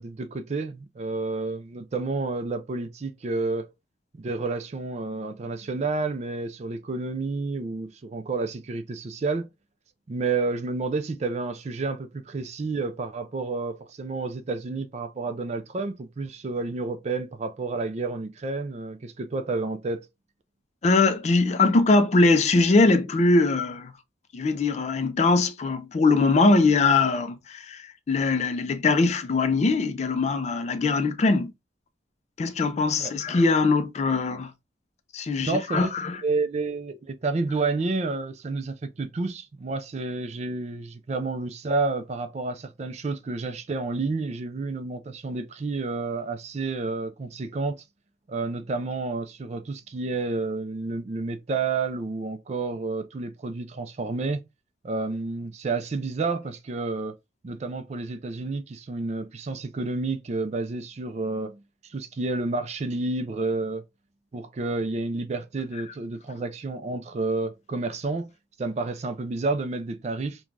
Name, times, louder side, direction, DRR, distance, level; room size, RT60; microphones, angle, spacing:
voice 1, 0.0-3.7 4.2-9.5 10.1-20.0 33.0-33.1 35.4-35.9 36.2-47.8 48.3-54.4 54.8-57.2 57.4-63.8 64.3-68.3 68.6-70.4, right 3 dB, 35° right, 0.4 m, -30 dB
voice 2, 20.8-23.9 24.3-31.5 32.4-34.5 35.1-36.2, left 3 dB, 40° left, 0.4 m, -22 dB
3.2 x 2.2 x 2.4 m
head